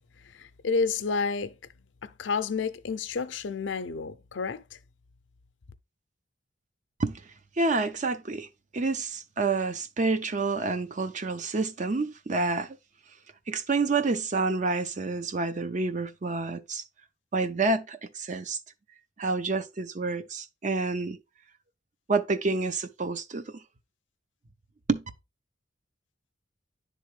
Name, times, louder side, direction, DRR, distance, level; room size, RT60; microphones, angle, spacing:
voice 1, 0.4-1.5 2.0-4.6, left 4 dB, 90° left, 0.5 m, -30 dB
voice 2, 7.6-8.5 8.7-12.8 13.5-16.8 17.3-18.6 19.2-21.2 22.1-23.4 24.9-25.0, right 3 dB, 40° right, 0.6 m, -28 dB
10.5 x 3.5 x 3.1 m
head